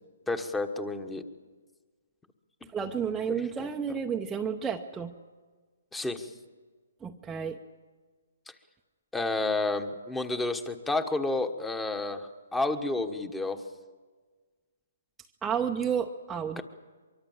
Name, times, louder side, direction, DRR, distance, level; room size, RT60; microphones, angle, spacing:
voice 1, 0.3-1.2 5.9-6.3 9.1-13.6 16.6-16.7, left 2 dB, 5° left, 9 dB, 1.4 m, -30 dB
voice 2, 2.7-5.1 7.0-7.6 15.4-16.6, right 7 dB, 10° right, 1 dB, 0.8 m, -31 dB
24.0 x 23.0 x 7.4 m, 1.4 s
hypercardioid pair, 145°, 0 cm